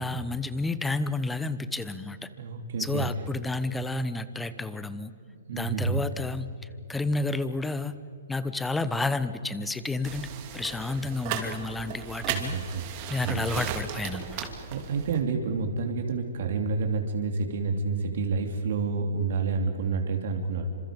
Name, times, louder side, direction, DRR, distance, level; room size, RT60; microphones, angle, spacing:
voice 1, 0.0-2.3 2.8-5.1 5.5-6.5 6.9-8.0 8.3-12.6 13.1-14.4, left 2 dB, 5° left, 14 dB, 1.0 m, -30 dB
voice 2, 2.4-3.1 5.5-6.0 12.3-12.9 13.2-13.5 14.7-20.7, right 4 dB, 60° right, 4 dB, 2.9 m, -29 dB
sound 1, 10.0-15.2, right 8 dB, 35° right, 2.8 m, -36 dB
28.0 x 26.5 x 5.3 m, 2.6 s
hypercardioid pair, 150°, 0 cm